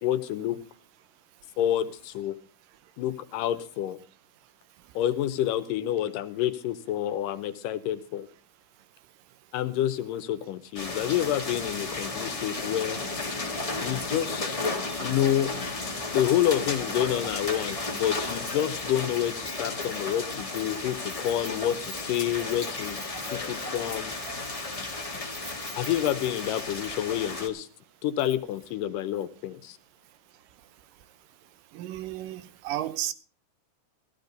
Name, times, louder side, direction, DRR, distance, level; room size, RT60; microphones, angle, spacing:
voice 1, 0.0-0.6 1.6-2.4 3.0-4.0 5.0-8.3 9.5-13.0 13.8-14.6 15.0-15.5 16.1-23.1 23.3-24.1 25.8-27.7 28.0-29.8, left 11 dB, 80° left, 2.4 m, -28 dB
sound 1, 10.8-27.5, left 3 dB, 35° left, 0.5 m, -33 dB
Keys jangling, 17.9-27.1 27.4-27.5 28.2-28.7 29.0-29.1, right 3 dB, 40° right, 3.0 m, -49 dB
voice 2, 31.7-33.1, right 13 dB, 85° right, 2.5 m, -33 dB
15.0 x 13.5 x 3.9 m
omnidirectional pair, 3.8 m